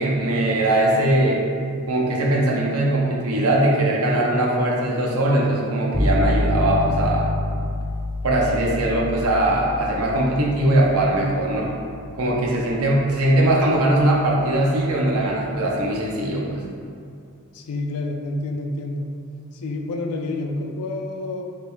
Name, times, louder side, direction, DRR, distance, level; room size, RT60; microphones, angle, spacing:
voice 1, 0.0-1.4 1.9-7.3 8.2-11.7 12.1-16.6, right 1 dB, 80° right, -2 dB, 0.6 m, -20 dB
sound 1, 5.9-15.8, left 1 dB, 5° left, 0.3 m, -28 dB
voice 2, 17.5-19.0 19.6-21.4, left 2 dB, 85° left, 3 dB, 0.3 m, -28 dB
2.8 x 2.7 x 3.3 m, 2.4 s
head